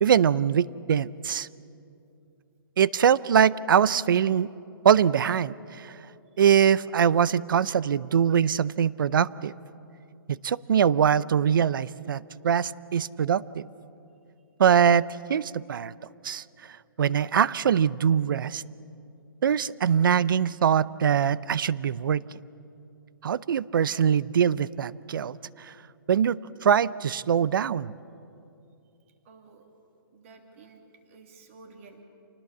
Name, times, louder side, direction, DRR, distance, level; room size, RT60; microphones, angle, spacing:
voice 1, 0.0-1.5 2.8-4.5 4.8-5.9 6.4-9.5 10.4-13.7 14.6-15.9 16.2-16.4 17.0-18.6 19.4-22.2 23.2-25.7 26.1-27.9, right 8 dB, 65° right, 20 dB, 0.6 m, -23 dB
voice 2, 29.2-29.7 30.1-30.8 31.1-32.0, right 4 dB, 35° right, 4 dB, 2.7 m, -51 dB
28.0 x 19.5 x 7.3 m, 2.7 s
hypercardioid pair, 170°, 12 cm